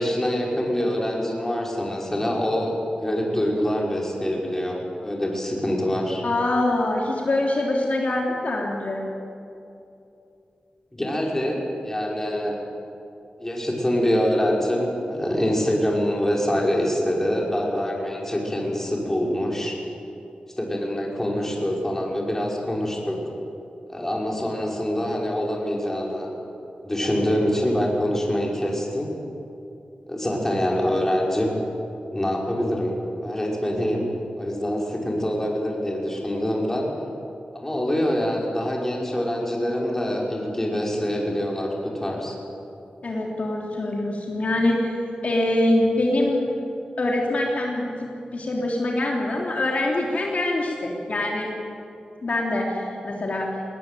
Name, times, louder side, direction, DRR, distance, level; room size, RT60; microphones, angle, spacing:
voice 1, 0.0-6.2 10.9-12.6 13.4-19.7 20.6-23.2 23.9-26.3 26.8-29.1 30.1-31.6 32.1-34.1 34.4-36.9 37.5-42.3, equal, 15° left, -2 dB, 5.5 m, -25 dB
voice 2, 6.2-9.0 43.0-46.5 47.0-51.5 52.2-53.5, left 1 dB, 55° left, -1 dB, 3.5 m, -24 dB
21.0 x 19.5 x 9.4 m, 2.7 s
wide cardioid pair, 85°, 3 cm